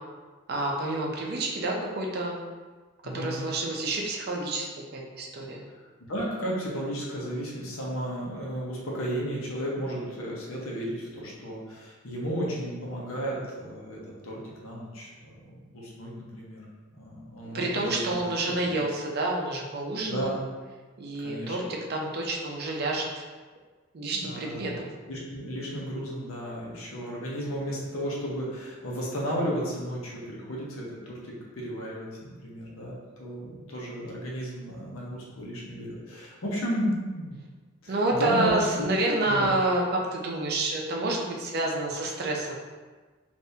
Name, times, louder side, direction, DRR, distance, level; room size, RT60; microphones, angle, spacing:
voice 1, 0.5-2.4 3.1-5.6 17.5-20.4 21.0-23.3 23.9-24.7 37.9-42.6, right 2 dB, 50° right, -1 dB, 0.5 m, -28 dB
voice 2, 3.0-3.4 6.0-15.1 15.5-16.6 17.0-18.2 20.0-20.4 21.2-21.6 24.1-24.8 25.1-37.4 37.8-38.5 39.3-39.5, equal, 75° left, -3 dB, 0.8 m, -34 dB
3.4 x 2.6 x 2.7 m, 1.4 s
head